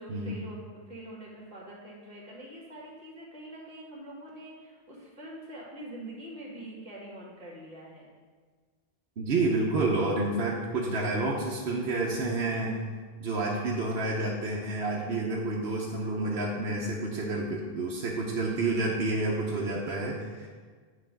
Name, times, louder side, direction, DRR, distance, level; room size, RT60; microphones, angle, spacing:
voice 1, 0.0-8.1, right 1 dB, 40° right, -5 dB, 1.9 m, -44 dB
voice 2, 9.2-12.8 13.2-20.5, right 2 dB, 75° right, -3 dB, 1.0 m, -29 dB
9.8 x 3.3 x 5.1 m, 1.5 s
omnidirectional pair, 1.0 m